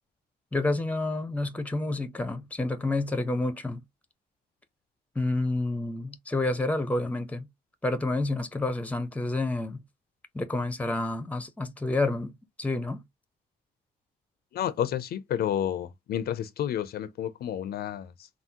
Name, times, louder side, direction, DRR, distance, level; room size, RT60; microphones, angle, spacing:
voice 1, 0.5-3.8 5.2-7.5 7.8-9.8 10.3-12.3 12.6-13.0, left 2 dB, 10° left, 0.6 m, -29 dB
voice 2, 14.5-18.3, left 10 dB, 70° left, 0.5 m, -30 dB
3.6 x 2.0 x 2.7 m
cardioid pair, 100°, 17 cm